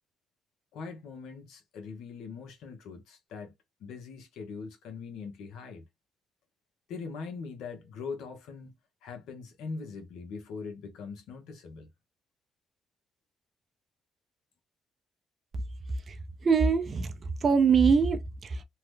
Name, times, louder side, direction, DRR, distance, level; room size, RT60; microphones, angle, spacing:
voice 1, 0.7-3.5 3.8-5.8 6.9-8.8 9.0-11.9, left 5 dB, 85° left, 0.8 m, -41 dB
voice 2, 16.1-18.6, right 5 dB, 45° right, 0.4 m, -24 dB
2.8 x 2.1 x 3.2 m
cardioid pair, 90°, 0 cm